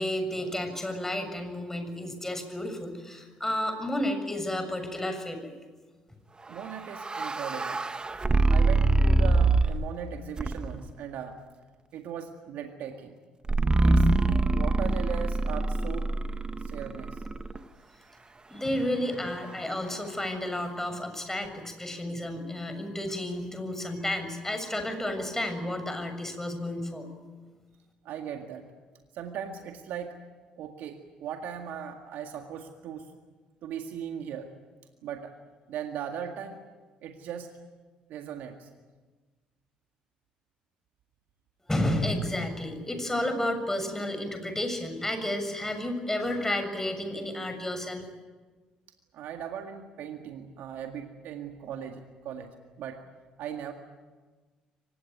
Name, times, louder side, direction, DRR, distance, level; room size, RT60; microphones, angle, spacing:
voice 1, 0.0-5.5 18.5-27.1 41.7-48.0, left 1 dB, 10° left, 7 dB, 6.9 m, -31 dB
voice 2, 6.5-7.8 8.5-11.4 11.9-13.2 13.8-14.1 14.5-16.1 16.6-17.2 28.0-28.6 29.1-30.2 30.6-33.1 33.6-34.5 35.0-35.3 35.7-36.6 37.0-37.5 38.1-38.7 49.1-52.5 52.8-53.0 53.4-53.7, right 8 dB, 70° right, 4 dB, 2.0 m, -38 dB
sound 1, 6.6-9.9 10.4-10.9 13.5-17.6, right 2 dB, 25° right, 1.6 m, -24 dB
24.0 x 20.0 x 9.4 m, 1.3 s
hypercardioid pair, 55°, 3 cm